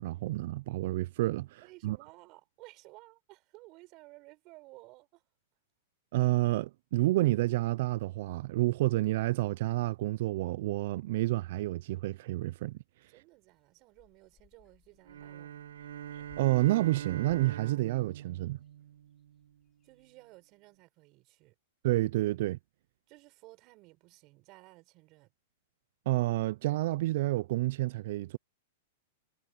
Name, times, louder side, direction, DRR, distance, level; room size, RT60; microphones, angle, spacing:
voice 1, 0.0-2.0 6.1-12.8 16.4-18.6 21.8-22.6 26.1-28.4, right 17 dB, 55° right, 0.3 m, -29 dB
voice 2, 1.6-5.2 13.1-15.6 19.8-21.5 23.1-25.3, right 22 dB, 40° right, 7.1 m, -56 dB
sound 1, 13.3-20.1, left 9 dB, 20° left, 5.5 m, -65 dB
sound 2, 15.1-19.5, right 10 dB, 85° right, 1.1 m, -43 dB
hypercardioid pair, 150°, 0 cm